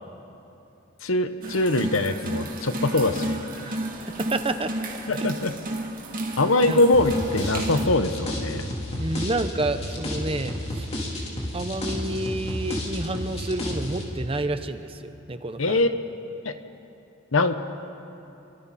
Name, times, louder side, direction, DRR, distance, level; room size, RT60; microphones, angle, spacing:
voice 1, 1.0-3.4 5.1-5.5 6.4-8.6 15.6-15.9 16.4-16.5 17.3-17.5, left 2 dB, 80° left, 9 dB, 1.1 m, -22 dB
sound 1, 1.4-7.9, right 1 dB, 45° right, 2.5 m, -32 dB
voice 2, 4.2-4.7 5.1-5.3 6.7-6.8 9.0-10.9 11.5-15.8, right 2 dB, 30° right, 9 dB, 0.9 m, -29 dB
sound 2, 6.9-14.0, left 1 dB, 30° left, 3.7 m, -31 dB
29.5 x 24.0 x 4.3 m, 2.9 s
head